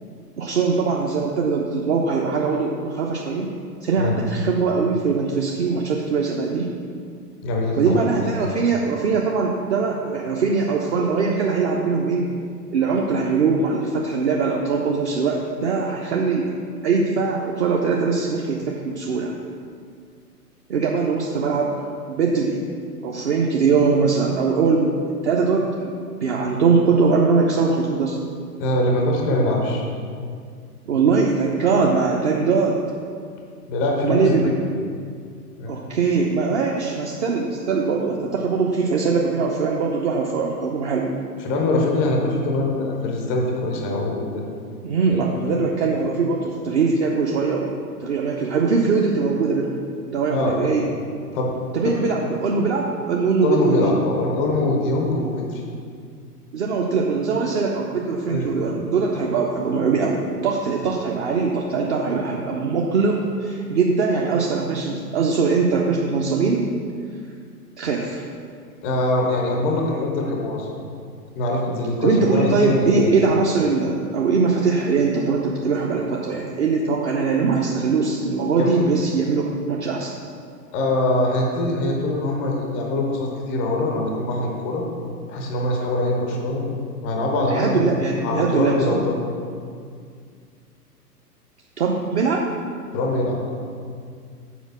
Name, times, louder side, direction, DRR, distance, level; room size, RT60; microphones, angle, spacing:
voice 1, 0.4-3.5 3.8-6.7 7.8-12.2 12.7-16.5 16.8-19.3 20.7-21.8 22.1-22.6 23.0-25.9 26.2-28.2 30.9-32.8 34.0-34.8 35.7-41.1 44.8-49.8 50.1-50.9 51.7-53.9 55.2-55.3 56.5-66.7 67.8-68.2 72.0-80.2 87.5-89.0 91.8-92.5, right 4 dB, 45° right, -1 dB, 0.7 m, -21 dB
voice 2, 7.4-8.0 28.6-29.9 33.7-34.5 35.6-35.7 41.4-44.5 45.1-45.2 50.3-50.5 51.3-51.5 51.8-52.0 53.4-55.6 58.3-58.5 68.8-70.8 71.3-73.1 78.6-78.8 80.7-84.8 85.3-86.6 87.0-89.2 92.9-93.5, left 2 dB, 5° left, 0 dB, 0.4 m, -23 dB
7.1 x 4.5 x 6.1 m, 2.2 s
figure-of-eight pair, 110°, 48 cm